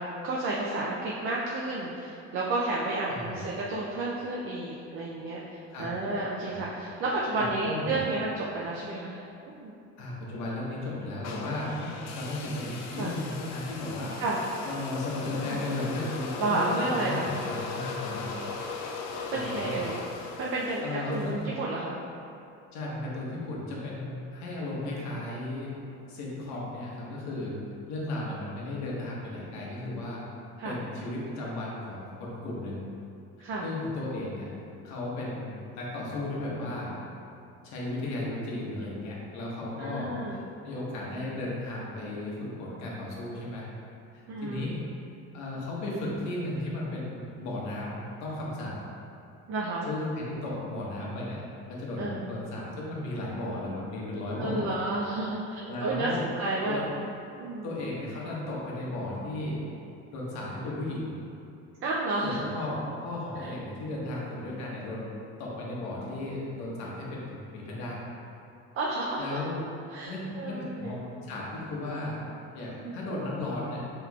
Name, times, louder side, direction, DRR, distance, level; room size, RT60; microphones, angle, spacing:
voice 1, 0.0-9.2 9.6-9.7 13.0-13.1 14.2-14.4 15.4-15.6 16.4-17.3 19.3-20.0 20.4-22.0 30.6-30.8 33.4-33.7 39.8-40.4 44.3-44.7 49.5-49.9 52.0-52.3 54.4-57.0 57.4-57.7 61.8-62.4 63.4-63.5 68.8-69.4 69.9-71.1 72.8-73.0, right 2 dB, 45° right, -4 dB, 0.5 m, -31 dB
voice 2, 3.1-3.5 5.7-5.9 6.5-6.6 7.3-8.0 10.0-14.1 14.6-18.3 19.3-19.9 20.8-21.4 22.7-25.7 26.1-27.5 27.9-30.2 30.6-32.8 33.6-34.5 34.8-37.0 37.6-40.4 40.6-43.6 44.1-44.8 45.3-48.8 49.9-54.8 55.6-56.2 56.6-56.8 57.6-59.6 60.1-61.2 62.2-65.1 65.4-68.0 69.2-69.6 70.0-71.0 71.3-72.2 72.5-73.8, left 2 dB, 65° left, -5 dB, 1.1 m, -35 dB
sound 1, 11.2-21.4, left 4 dB, 85° left, 0.5 m, -38 dB
5.7 x 3.1 x 2.3 m, 2.7 s
cardioid pair, 135°, 30 cm